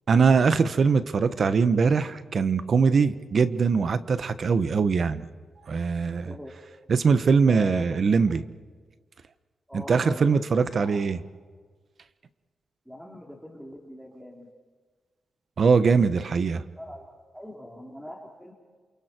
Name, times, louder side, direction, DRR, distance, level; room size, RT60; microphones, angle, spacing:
voice 1, 0.1-5.2 5.7-6.3 6.9-8.4 9.7-11.2 15.6-16.6, right 5 dB, 55° right, 12 dB, 1.3 m, -22 dB
voice 2, 7.4-8.3 9.7-11.0 12.9-14.5 16.7-17.1 17.3-18.5, left 1 dB, ahead, -1 dB, 3.6 m, -41 dB
28.0 x 28.0 x 4.6 m, 1.4 s
cardioid pair, 80°, 0 cm